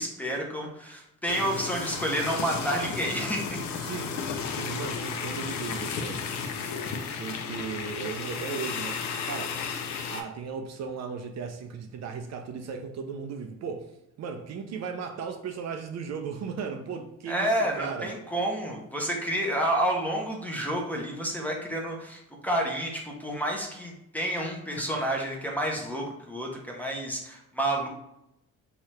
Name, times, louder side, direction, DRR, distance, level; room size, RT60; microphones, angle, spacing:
voice 1, 0.0-3.6 17.3-27.9, right 1 dB, 5° left, 0 dB, 0.6 m, -30 dB
sound 1, 1.3-10.2, left 6 dB, 65° left, 0.5 m, -33 dB
voice 2, 3.7-4.2 4.5-6.2 7.2-9.6 10.1-13.9 14.2-18.1, right 6 dB, 60° right, 5 dB, 0.5 m, -36 dB
2.8 x 2.3 x 3.1 m, 0.84 s
cardioid pair, 90°, 30 cm